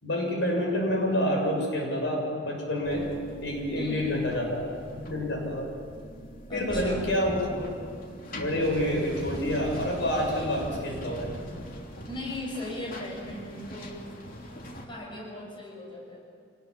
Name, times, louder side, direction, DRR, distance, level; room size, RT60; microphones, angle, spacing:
voice 1, 0.0-3.1 3.4-5.7 6.5-7.7 8.4-11.3, left 1 dB, 65° left, 0 dB, 7.2 m, -28 dB
sound 1, 2.8-14.9, equal, 45° left, 3.2 m, -41 dB
voice 2, 3.7-4.1 6.5-7.0 12.1-14.0 14.8-16.2, left 1 dB, 25° left, -2 dB, 6.5 m, -37 dB
27.0 x 20.0 x 8.7 m, 2.4 s
head